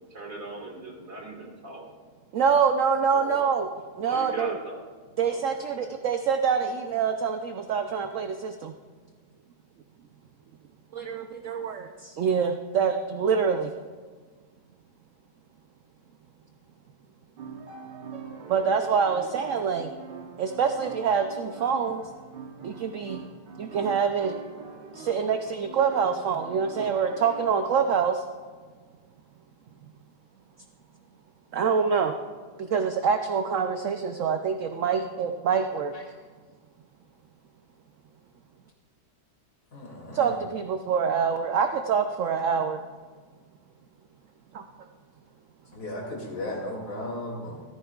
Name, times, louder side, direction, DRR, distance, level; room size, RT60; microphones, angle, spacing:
voice 1, 0.1-1.9 3.1-3.4 4.0-4.8 5.2-5.9, right 1 dB, 50° right, -2 dB, 2.3 m, -39 dB
voice 2, 2.3-3.7 4.0-4.5 5.2-8.7 10.9-13.7 18.5-19.9 20.4-22.1 22.6-23.2 23.6-24.4 24.9-28.2 31.5-32.2 32.6-35.9 40.1-42.8 44.5-44.6, right 6 dB, 70° right, 6 dB, 0.8 m, -25 dB
sound 1, 17.4-27.9, right 5 dB, 90° right, 1.7 m, -43 dB
voice 3, 39.7-40.3 45.7-47.6, left 1 dB, 60° left, -2 dB, 3.1 m, -35 dB
14.0 x 14.0 x 2.4 m, 1.5 s
omnidirectional pair, 1.8 m